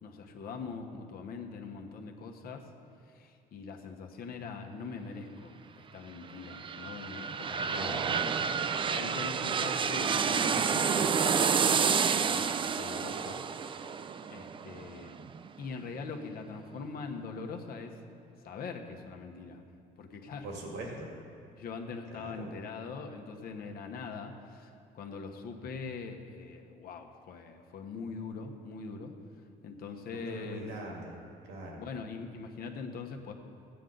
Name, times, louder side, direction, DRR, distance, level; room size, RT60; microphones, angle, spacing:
voice 1, 0.0-2.7 3.1-8.3 8.9-13.4 14.3-15.2 15.6-17.9 18.4-19.6 20.0-20.5 20.9-21.0 21.6-29.1 29.6-30.7 31.8-33.3, left 4 dB, 60° left, 3 dB, 1.2 m, -42 dB
sound 1, 6.2-15.9 16.3-16.4, right 6 dB, 30° right, 0.4 m, -30 dB
voice 2, 7.6-8.2 20.4-21.1 22.2-22.5 30.1-31.1 31.5-31.8, right 2 dB, 85° right, -1 dB, 2.2 m, -41 dB
14.5 x 9.1 x 3.9 m, 2.4 s
cardioid pair, 110°, 17 cm